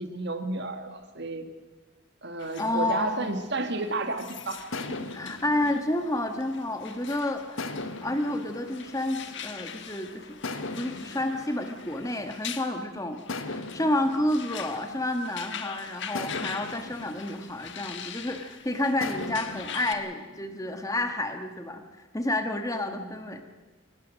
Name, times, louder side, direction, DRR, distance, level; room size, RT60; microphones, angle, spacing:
voice 1, 0.0-1.5 2.2-4.6 4.9-5.1 22.9-23.2, right 2 dB, 55° right, 7 dB, 1.7 m, -32 dB
sound 1, 2.4-19.9, left 7 dB, 60° left, 1.5 m, -43 dB
voice 2, 2.6-3.3 5.1-13.2 13.5-21.8 22.1-23.4, left 1 dB, 15° left, 6 dB, 1.4 m, -30 dB
sound 2, 3.5-4.1 4.7-7.0 7.6-9.7 10.4-12.7 13.3-15.5 16.1-18.4 19.0-21.3, left 2 dB, 80° left, 1.5 m, -40 dB
23.0 x 19.0 x 6.4 m, 1.2 s
head